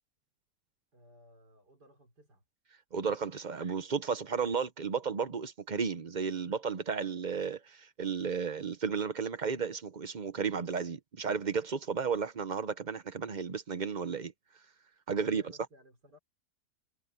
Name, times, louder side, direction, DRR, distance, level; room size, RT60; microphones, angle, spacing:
voice 1, 0.9-2.4 15.1-16.2, equal, 90° right, 6.5 m, -59 dB
voice 2, 2.9-14.3 15.1-15.4, right 6 dB, 40° right, 0.7 m, -33 dB
omnidirectional pair, 1.7 m